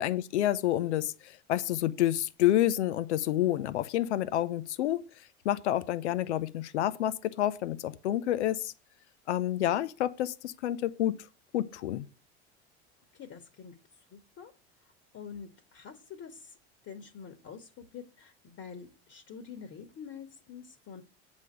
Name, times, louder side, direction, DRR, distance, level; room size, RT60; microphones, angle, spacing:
voice 1, 0.0-5.0 5.4-8.7 9.3-11.2 11.5-12.1, left 13 dB, 85° left, 0.7 m, -29 dB
voice 2, 13.1-13.8 14.1-14.5 15.1-16.6 16.8-21.0, left 7 dB, 45° left, 1.8 m, -46 dB
8.4 x 5.2 x 6.5 m
hypercardioid pair, 85°, 33 cm